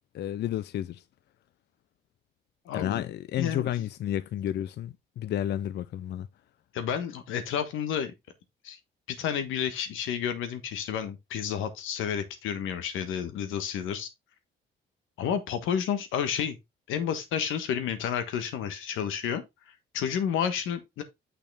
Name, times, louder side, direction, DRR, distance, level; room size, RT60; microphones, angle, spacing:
voice 1, 0.1-1.0 2.7-6.3, left 11 dB, 60° left, 0.4 m, -31 dB
voice 2, 2.6-3.0 3.3-3.7 6.7-8.1 8.6-8.8 9.1-14.1 15.2-16.6 16.9-21.0, left 8 dB, 90° left, 1.3 m, -31 dB
6.5 x 5.8 x 3.4 m
cardioid pair, 90°, 20 cm